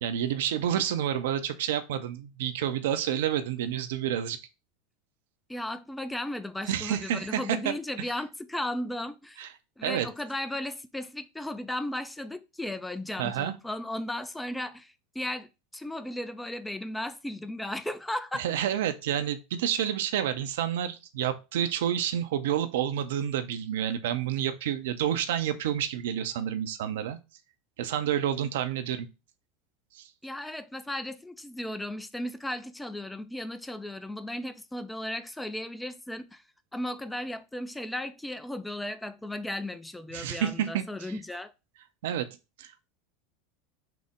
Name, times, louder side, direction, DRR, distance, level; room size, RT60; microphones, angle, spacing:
voice 1, 0.0-4.4 6.7-7.7 9.4-9.5 9.8-10.1 13.2-13.5 18.3-27.2 27.8-29.1 30.0-30.1 40.1-41.1 42.0-42.3 42.6-42.9, right 10 dB, 60° right, 0.4 m, -29 dB
voice 2, 5.5-9.4 9.8-18.4 30.2-36.4 36.7-41.5, left 1 dB, 5° left, 0.3 m, -35 dB
5.8 x 2.0 x 3.5 m
figure-of-eight pair, 80°, 0 cm